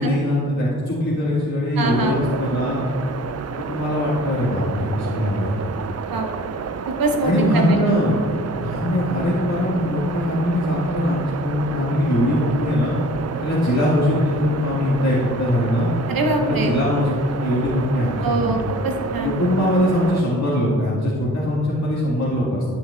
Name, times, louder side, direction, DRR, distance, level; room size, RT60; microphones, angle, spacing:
voice 1, 0.0-2.8 3.6-5.6 7.2-8.2 8.6-12.9 13.4-15.9 16.4-18.6 19.2-22.6, left 1 dB, 50° left, -7 dB, 1.6 m, -21 dB
sound 1, 1.8-20.2, right 6 dB, 45° right, 0.4 m, -30 dB
voice 2, 1.8-2.2 6.1-6.3 6.9-7.8 16.1-16.7 18.2-19.3, right 2 dB, 75° right, 3 dB, 1.0 m, -23 dB
10.5 x 5.7 x 2.3 m, 2.2 s
cardioid pair, 40°, 35 cm